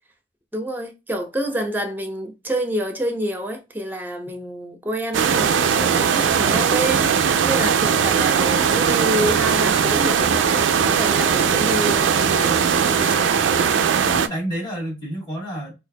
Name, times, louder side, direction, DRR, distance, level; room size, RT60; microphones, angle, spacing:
voice 1, 0.5-7.1 7.4-10.4 10.8-13.8, equal, 10° right, 0.6 m, -28 dB
sound 1, 5.1-14.3, right 7 dB, 80° right, 0.4 m, -19 dB
voice 2, 14.0-15.7, equal, 20° left, 1.4 m, -31 dB
4.3 x 2.5 x 2.2 m
head